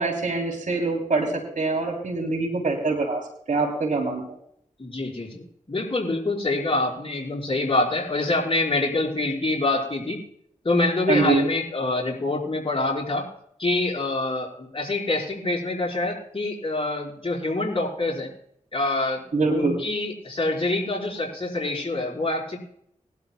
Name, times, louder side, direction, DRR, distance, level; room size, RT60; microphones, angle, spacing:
voice 1, 0.0-3.2 3.5-4.3 11.1-11.4 19.3-19.7, right 3 dB, 70° right, 2 dB, 3.3 m, -24 dB
voice 2, 4.8-10.2 10.6-13.3 13.6-18.3 18.7-19.2 19.5-22.6, left 2 dB, 40° left, -1 dB, 4.8 m, -26 dB
21.0 x 12.0 x 2.3 m, 0.68 s
cardioid pair, 50°, 13 cm